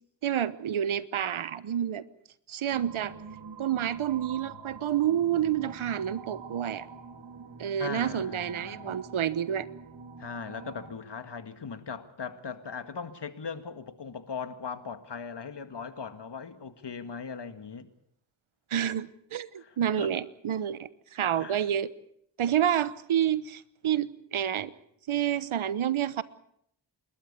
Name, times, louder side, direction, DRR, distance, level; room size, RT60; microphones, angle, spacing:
voice 1, 0.2-2.0 2.5-3.1 3.6-6.9 7.6-9.7 18.7-21.9 22.4-24.7 25.1-26.2, right 10 dB, 80° right, 1.1 m, -29 dB
sound 1, 2.7-10.9, right 5 dB, 60° right, 3.0 m, -46 dB
voice 2, 7.8-9.0 10.2-17.9 19.6-20.1 21.4-21.6, left 6 dB, 60° left, 2.0 m, -39 dB
28.5 x 13.0 x 8.4 m
cardioid pair, 60°, 48 cm